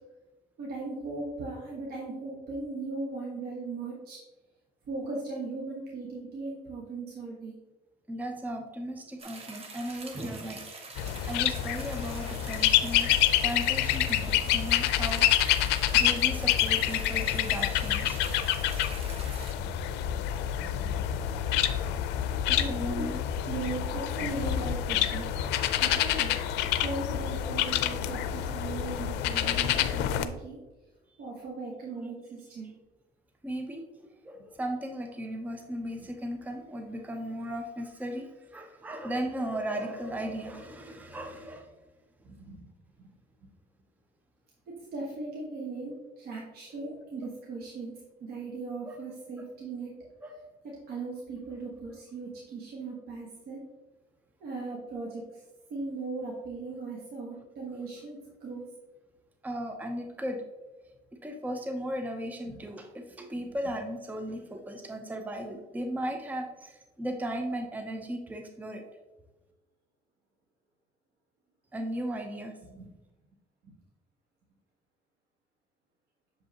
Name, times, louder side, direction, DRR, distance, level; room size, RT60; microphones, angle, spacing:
voice 1, 0.6-4.2 4.9-7.5 15.6-15.7 19.5-19.7 20.5-20.9 22.5-23.1 23.5-25.3 25.8-26.3 26.8-30.6 31.2-32.7 42.3-42.7 43.0-43.1 43.4-43.5 44.9-47.9 48.2-49.9 50.6-53.6 54.4-55.4 55.7-58.6 62.4-62.6 72.7-72.9 73.6-73.8, right 3 dB, 65° right, -3 dB, 1.3 m, -38 dB
voice 2, 8.1-10.6 11.3-13.1 13.4-18.5 22.4-23.2 25.9-26.0 33.4-41.7 46.3-46.4 48.8-49.0 50.2-50.5 59.4-60.4 61.2-68.8 71.7-72.5, equal, 10° right, 4 dB, 0.6 m, -36 dB
sound 1, 9.2-19.5, right 3 dB, 35° right, 1.1 m, -45 dB
sound 2, 11.0-30.3, left 11 dB, 85° left, 0.5 m, -27 dB
6.9 x 5.2 x 2.9 m, 1.1 s
cardioid pair, 110°, 17 cm